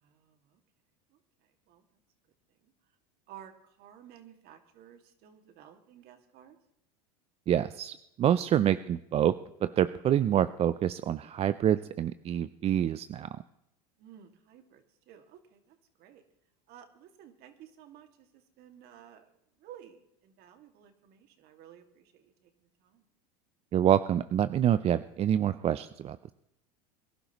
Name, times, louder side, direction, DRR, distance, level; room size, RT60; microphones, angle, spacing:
voice 1, 0.0-0.6 1.1-1.8 2.6-2.7 3.3-6.6 14.0-16.2 16.7-19.3 19.6-23.0, right 10 dB, 55° right, 6 dB, 2.2 m, -54 dB
voice 2, 7.5-9.4 9.6-13.3 23.7-26.2, right 10 dB, 30° right, 14 dB, 0.5 m, -27 dB
23.5 x 12.0 x 3.0 m, 0.80 s
supercardioid pair, 100°, 20 cm